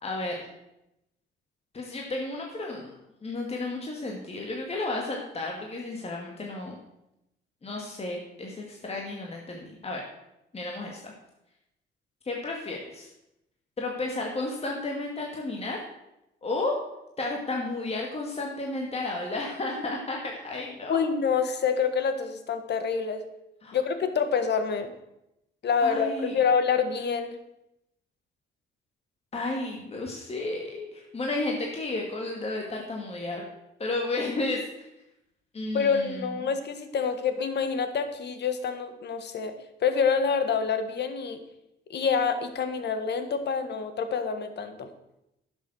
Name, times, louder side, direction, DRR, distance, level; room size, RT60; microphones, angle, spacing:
voice 1, 0.0-0.4 1.7-6.8 7.6-10.0 10.5-11.1 12.3-13.1 13.8-15.8 16.4-16.7 17.2-21.0 23.6-23.8 25.8-26.4 29.3-33.4 33.8-34.9 35.5-36.5, left 2 dB, 30° left, 0 dB, 2.1 m, -32 dB
voice 2, 20.9-23.2 23.7-24.9 25.6-27.4 35.7-39.5 39.8-41.4 41.9-44.9, left 6 dB, 60° left, 9 dB, 1.6 m, -27 dB
11.5 x 7.2 x 6.3 m, 0.86 s
cardioid pair, 90°, 20 cm